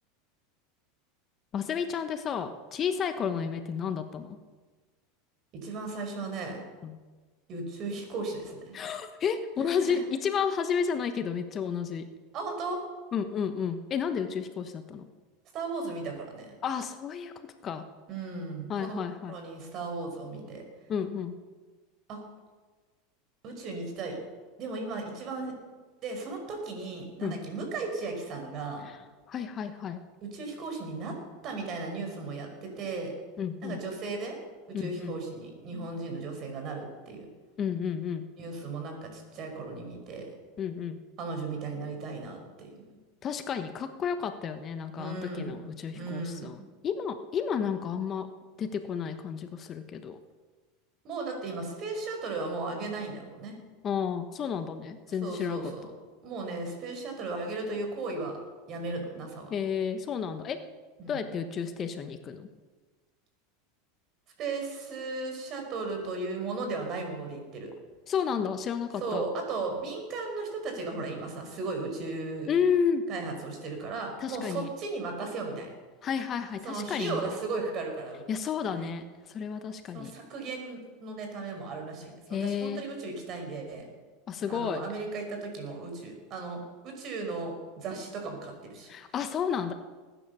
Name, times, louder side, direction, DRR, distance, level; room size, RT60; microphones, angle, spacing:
voice 1, 1.5-4.4 6.8-7.0 8.7-12.1 13.1-15.1 16.6-17.9 18.7-19.3 20.9-21.4 27.2-27.4 29.3-30.0 33.4-33.8 34.7-35.1 37.6-38.3 40.6-41.0 43.2-48.3 48.6-50.2 53.8-55.6 59.5-60.6 61.1-62.5 68.1-69.2 72.5-73.1 74.2-74.7 76.0-77.3 78.3-80.1 82.3-82.8 84.3-84.8 88.9-89.7, left 7 dB, 35° left, 9 dB, 1.1 m, -31 dB
voice 2, 5.5-6.6 7.5-8.8 9.6-10.0 12.3-12.8 15.5-16.5 18.1-19.0 19.3-20.6 22.1-22.2 23.4-24.2 24.6-25.5 26.0-28.9 30.2-31.1 31.4-33.1 33.6-34.4 34.7-37.3 38.4-40.3 41.2-42.8 44.9-45.7 45.9-46.6 51.0-53.5 55.2-55.8 56.2-58.4 58.7-59.5 61.0-61.3 64.4-67.7 69.0-72.5 73.1-75.7 76.6-78.2 78.7-78.9 79.9-82.1 82.4-83.8 84.5-88.9, right 3 dB, 45° right, 4 dB, 5.1 m, -36 dB
19.5 x 10.5 x 6.9 m, 1.4 s
supercardioid pair, 115°, 0 cm